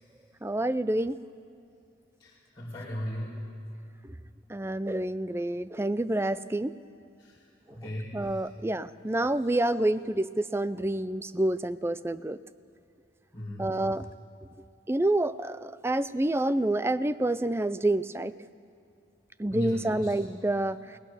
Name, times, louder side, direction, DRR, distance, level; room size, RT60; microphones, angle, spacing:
voice 1, 0.4-1.2 4.0-4.1 4.5-6.7 8.1-12.4 13.6-14.1 14.9-18.3 19.4-21.0, right 1 dB, 15° right, 15 dB, 0.4 m, -28 dB
voice 2, 2.2-3.4 7.2-7.3 7.7-8.2 13.3-13.7 19.5-20.1, equal, 20° left, -8 dB, 2.8 m, -36 dB
21.5 x 19.0 x 7.0 m, 2.6 s
head